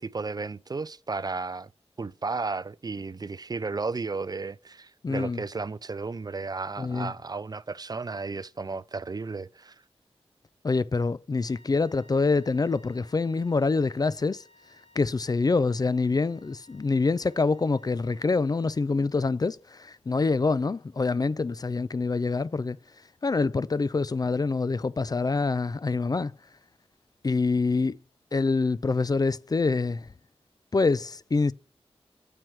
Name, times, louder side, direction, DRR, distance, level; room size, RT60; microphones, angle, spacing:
voice 1, 0.0-1.7 2.0-9.8, right 4 dB, 35° right, 0.4 m, -33 dB
voice 2, 5.0-5.4 6.8-7.1 10.6-14.4 15.0-22.8 23.2-26.3 27.2-28.0 28.3-30.0 30.7-31.5, left 4 dB, 35° left, 0.4 m, -26 dB
sound 1, 11.4-19.3, left 1 dB, 75° left, 3.8 m, -59 dB
7.8 x 4.5 x 5.7 m
cardioid pair, 55°, 11 cm